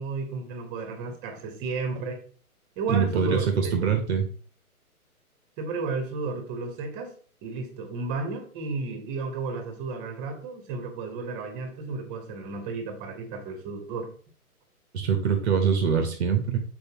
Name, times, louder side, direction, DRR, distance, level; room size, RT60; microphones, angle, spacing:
voice 1, 0.0-2.2 2.8-3.9 5.6-7.1 7.4-14.1, right 4 dB, 25° right, 5 dB, 1.4 m, -33 dB
voice 2, 2.9-4.2 14.9-16.6, right 6 dB, 45° right, 5 dB, 1.2 m, -24 dB
6.8 x 4.7 x 3.0 m, 0.43 s
hypercardioid pair, 140°, 44 cm